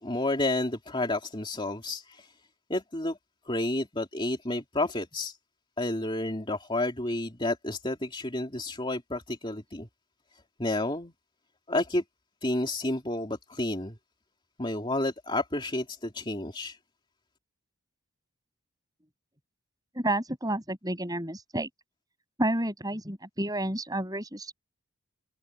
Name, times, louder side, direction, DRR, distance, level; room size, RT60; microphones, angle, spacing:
voice 1, 0.0-2.3 2.7-3.2 3.4-5.4 5.8-9.9 10.6-11.1 11.7-12.0 12.4-14.0 14.6-16.8, left 2 dB, 25° left, 3.3 m, -30 dB
voice 2, 19.9-21.7 22.4-24.5, right 1 dB, 15° right, 7.4 m, -30 dB
head